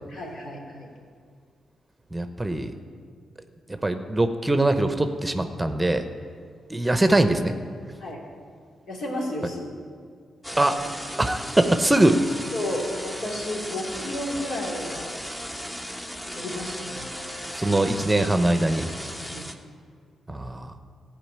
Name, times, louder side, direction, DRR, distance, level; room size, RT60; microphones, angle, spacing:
voice 1, 0.1-0.9 8.0-8.2 8.9-9.6 12.5-15.1 16.3-17.1 19.3-19.5, left 1 dB, 70° left, -3 dB, 3.0 m, -32 dB
voice 2, 2.1-2.7 3.8-6.0 6.7-7.5 10.6-10.8 11.2-12.3 17.5-18.9 20.3-20.7, right 1 dB, 15° right, 8 dB, 0.9 m, -22 dB
sound 1, 10.4-19.5, equal, 10° left, 1.1 m, -36 dB
15.0 x 5.1 x 8.6 m, 2.1 s
supercardioid pair, 55°, 0 cm